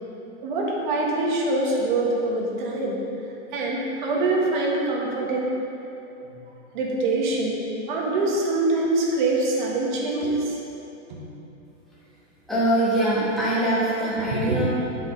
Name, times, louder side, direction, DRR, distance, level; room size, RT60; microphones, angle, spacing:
voice 1, 0.4-3.0 3.5-5.6 6.7-7.6 7.9-10.6 11.1-11.2 14.3-14.6, right 2 dB, 40° right, -2 dB, 1.4 m, -24 dB
voice 2, 12.5-14.7, right 1 dB, ahead, -11 dB, 1.6 m, -23 dB
7.8 x 5.0 x 5.2 m, 3.0 s
supercardioid pair, 165°, 36 cm